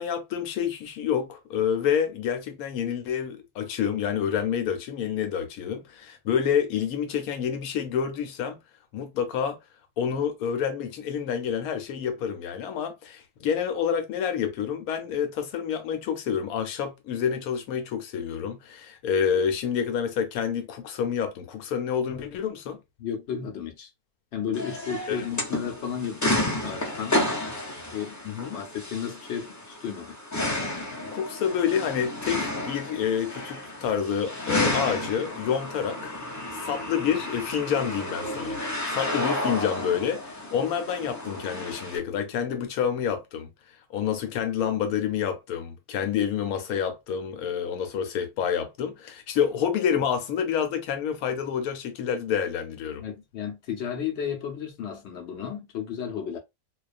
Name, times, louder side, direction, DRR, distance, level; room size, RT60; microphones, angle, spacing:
voice 1, 0.0-8.6 8.9-9.6 10.0-22.8 25.1-25.2 28.2-28.6 31.0-36.1 36.5-38.6 38.9-43.5 43.9-53.0, left 8 dB, 80° left, 1.1 m, -28 dB
voice 2, 23.0-23.9 24.3-27.4 27.9-30.2 53.0-56.4, left 8 dB, 60° left, 0.8 m, -33 dB
sound 1, 24.5-42.0, left 1 dB, 25° left, 0.4 m, -31 dB
2.3 x 2.3 x 2.3 m
omnidirectional pair, 1.5 m